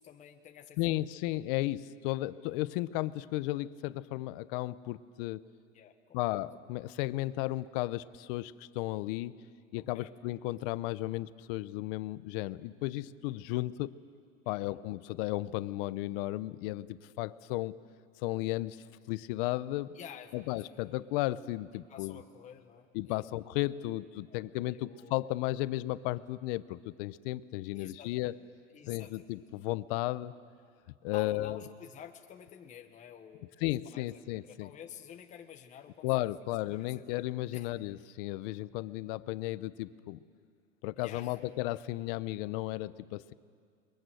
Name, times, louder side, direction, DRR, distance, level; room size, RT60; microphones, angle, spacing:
voice 1, 0.0-1.1 5.7-6.4 9.8-10.1 14.5-14.8 19.9-20.5 21.9-23.2 24.3-24.4 24.7-25.2 27.7-28.4 28.7-29.2 31.1-36.3 36.7-37.0 37.5-37.7 41.0-41.4, left 9 dB, 20° left, 4 dB, 1.2 m, -50 dB
voice 2, 0.8-5.5 6.1-9.4 9.7-14.0 14.5-17.8 18.2-20.0 20.3-22.2 22.9-28.4 28.9-30.3 31.0-31.6 33.6-34.7 36.0-40.2 40.8-43.3, left 17 dB, 45° left, 16 dB, 0.8 m, -34 dB
28.0 x 22.5 x 7.8 m, 2.1 s
supercardioid pair, 140°, 39 cm